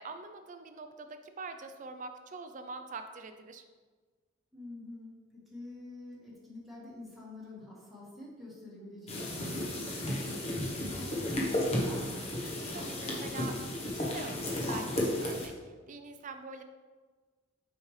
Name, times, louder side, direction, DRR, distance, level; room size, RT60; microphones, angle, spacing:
voice 1, 0.0-3.6 12.7-13.6 13.9-15.5 15.9-16.6, right 4 dB, 40° right, 7 dB, 0.4 m, -44 dB
voice 2, 4.5-12.3, left 1 dB, ahead, -6 dB, 1.5 m, -48 dB
sound 1, 9.1-15.5, left 1 dB, 30° left, 1.1 m, -33 dB
6.4 x 5.1 x 3.2 m, 1.4 s
head